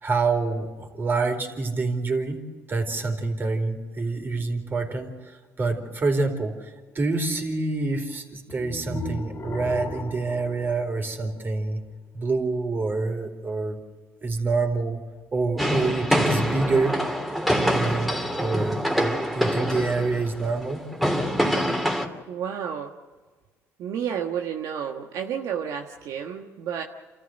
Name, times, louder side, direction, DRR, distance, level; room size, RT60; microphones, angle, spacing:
voice 1, 0.0-2.4 2.7-11.8 12.1-13.8 14.2-15.0 15.3-16.9 17.7-20.8, right 3 dB, 35° right, 4 dB, 4.4 m, -27 dB
sound 1, 8.5-11.7, left 2 dB, 35° left, 2.7 m, -36 dB
sound 2, 15.6-22.1, equal, ahead, 3.0 m, -25 dB
voice 2, 22.3-22.9 23.8-26.8, right 8 dB, 70° right, 2 dB, 1.5 m, -31 dB
28.5 x 14.0 x 8.0 m, 1.4 s
supercardioid pair, 80°, 6 cm